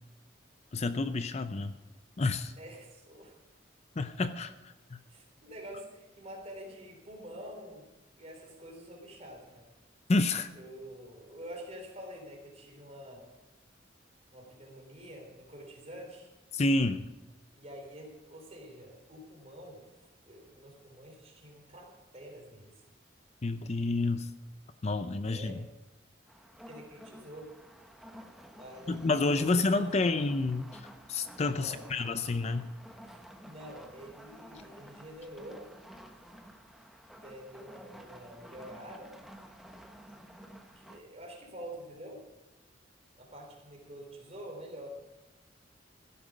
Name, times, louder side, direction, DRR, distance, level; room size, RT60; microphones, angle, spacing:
voice 1, 0.7-1.7 2.2-2.5 4.0-4.5 4.9-5.0 10.1-10.5 16.5-17.1 23.4-24.3 24.8-25.6 28.9-32.7, left 3 dB, 35° left, 11 dB, 0.5 m, -29 dB
voice 2, 2.6-3.4 5.1-7.9 8.2-9.7 10.5-13.3 14.3-16.3 17.5-19.9 20.2-22.8 25.2-25.6 26.7-27.5 28.6-30.2 31.5-31.8 33.0-35.7 37.1-39.2 40.8-42.2 43.1-44.9, equal, 35° right, 1 dB, 3.6 m, -47 dB
sound 1, 26.3-41.0, equal, ahead, 0.9 m, -52 dB
16.0 x 11.0 x 5.1 m, 1.1 s
head